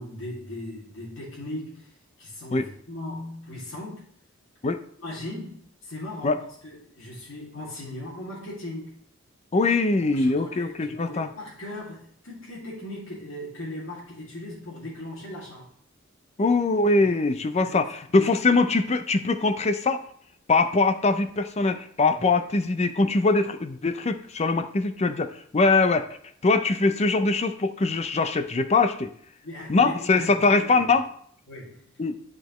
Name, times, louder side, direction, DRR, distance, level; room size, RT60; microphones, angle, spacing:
voice 1, 0.0-1.9 2.2-4.0 5.0-8.9 10.0-15.7 17.0-17.2 17.6-17.9 18.1-18.2 22.1-22.2 29.4-30.9 31.5-31.8, left 1 dB, 70° left, -7 dB, 2.3 m, -38 dB
voice 2, 9.5-11.3 16.4-20.0 20.5-26.0 26.4-29.1 29.7-31.1 32.0-32.2, left 3 dB, 30° left, 9 dB, 0.5 m, -22 dB
9.7 x 5.0 x 3.1 m, 0.62 s
head